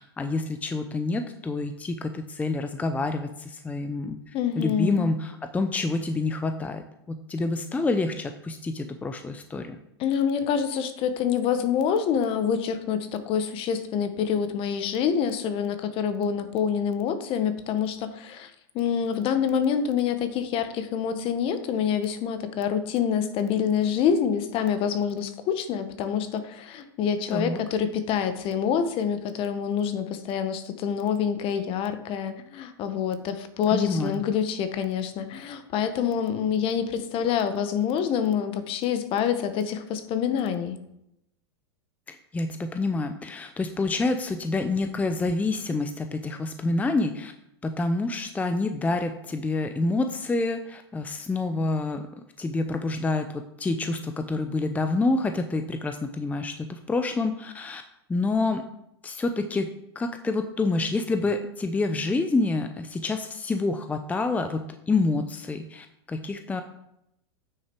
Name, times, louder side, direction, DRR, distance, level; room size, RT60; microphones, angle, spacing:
voice 1, 0.0-6.8 7.1-9.8 27.3-27.6 33.7-34.2 42.1-47.3 47.6-52.0 52.4-57.8 58.1-58.6 59.0-59.7 59.9-66.6, left 3 dB, 10° left, 7 dB, 0.6 m, -27 dB
voice 2, 4.3-5.1 10.0-40.8, left 8 dB, 40° left, 10 dB, 1.2 m, -26 dB
9.0 x 6.5 x 4.6 m, 0.81 s
hypercardioid pair, 115°, 14 cm